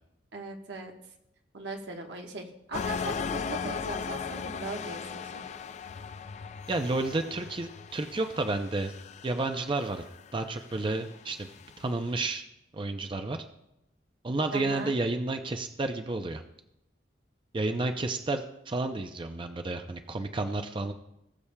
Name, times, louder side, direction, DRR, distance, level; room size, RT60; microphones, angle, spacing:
voice 1, 0.3-0.9 1.5-5.4 14.5-14.9, right 2 dB, 80° right, 2 dB, 1.2 m, -39 dB
sound 1, 2.7-12.0, left 6 dB, 40° left, 0.3 m, -38 dB
voice 2, 6.7-8.9 9.2-10.0 10.3-11.5 11.8-12.4 12.7-13.4 14.2-16.4 17.5-20.9, right 2 dB, 30° right, 6 dB, 0.5 m, -31 dB
20.0 x 6.9 x 2.2 m, 0.84 s
head